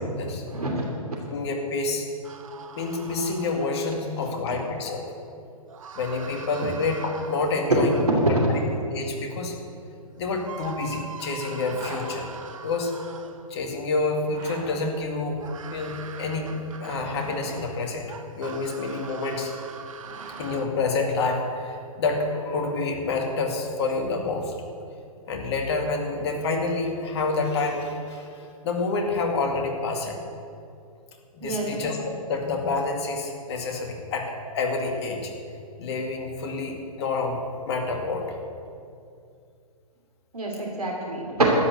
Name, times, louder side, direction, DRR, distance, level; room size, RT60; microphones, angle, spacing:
voice 1, 0.5-0.8 4.2-4.5 6.6-6.7 20.1-20.3 31.4-31.7 40.3-41.4, right 3 dB, 80° right, -1 dB, 2.9 m, -28 dB
voice 2, 1.3-2.1 2.8-5.0 5.9-7.9 8.9-9.6 10.2-12.3 12.6-12.9 13.5-15.4 15.7-19.5 20.4-24.5 25.3-30.2 31.4-32.0 32.3-35.3 35.8-37.4 37.7-38.4, left 3 dB, 45° left, 2 dB, 2.2 m, -28 dB
sound 1, 2.2-4.1 5.7-8.7 10.0-10.1 10.4-13.6 15.4-17.5 18.1-20.7, right 6 dB, 60° right, 1.1 m, -43 dB
Zipper (clothing), 11.7-12.0 14.2-14.6 16.8-17.6 19.5-20.6, right 4 dB, 20° right, 2.9 m, -41 dB
12.5 x 9.0 x 8.0 m, 2.5 s
figure-of-eight pair, 125°, 19 cm